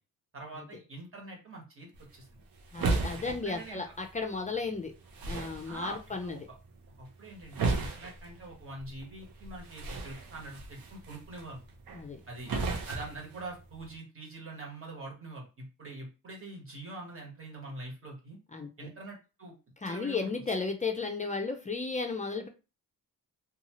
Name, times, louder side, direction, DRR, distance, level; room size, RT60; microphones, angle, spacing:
voice 1, 0.3-2.4 3.1-3.8 5.6-6.4 7.0-11.6 12.3-12.5 12.9-18.4 18.8-19.6 19.8-20.3, right 2 dB, 40° right, -1 dB, 1.2 m, -44 dB
sound 1, 1.9-14.0, right 3 dB, 80° right, 0.7 m, -37 dB
voice 2, 2.7-4.9 5.3-6.4 11.9-12.2 18.5-18.9 19.8-22.5, left 4 dB, 20° left, 3 dB, 0.4 m, -34 dB
2.7 x 2.3 x 2.9 m, 0.30 s
cardioid pair, 115°, 35 cm